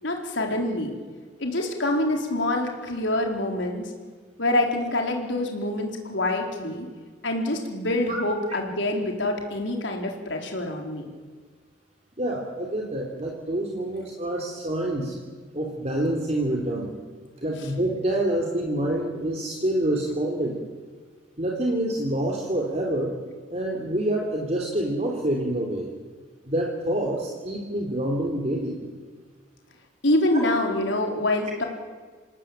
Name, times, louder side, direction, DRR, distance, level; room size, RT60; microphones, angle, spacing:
voice 1, 0.0-0.9 1.4-3.9 4.4-6.9 7.2-11.1 17.6-17.7 30.0-31.6, left 1 dB, 75° left, 2 dB, 4.5 m, -26 dB
voice 2, 12.2-15.2 15.5-16.9 17.4-20.6 21.4-23.2 23.5-25.9 26.4-28.8, right 1 dB, 35° right, -1 dB, 3.3 m, -27 dB
28.0 x 18.5 x 9.1 m, 1.5 s
head